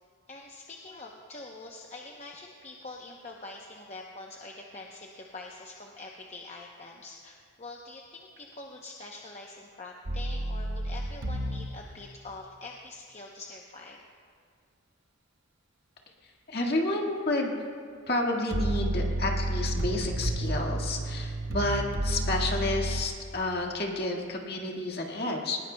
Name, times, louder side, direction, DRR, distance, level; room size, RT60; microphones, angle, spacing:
voice 1, 0.3-14.0, left 2 dB, 35° left, 0 dB, 0.8 m, -45 dB
sound 1, 10.1-11.7 18.5-23.0, right 1 dB, 65° right, 0.9 m, -30 dB
voice 2, 16.5-17.5 18.1-25.6, left 2 dB, 50° left, 0 dB, 1.8 m, -30 dB
20.0 x 18.5 x 2.3 m, 2.1 s
head